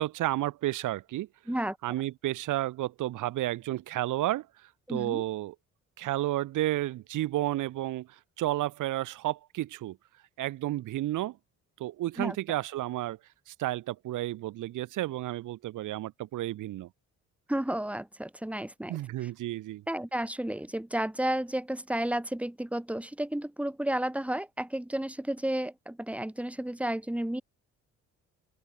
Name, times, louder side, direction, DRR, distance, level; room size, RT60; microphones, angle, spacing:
voice 1, 0.0-1.3 1.8-4.5 4.9-5.5 6.0-8.1 8.4-10.0 10.4-11.4 11.8-13.2 13.5-16.9 18.9-19.8, right 15 dB, 85° right, 3.1 m, -31 dB
voice 2, 4.9-5.2 12.2-12.4 17.5-19.3 19.9-27.4, right 1 dB, 5° right, 3.1 m, -32 dB
open air
cardioid pair, 90°, 30 cm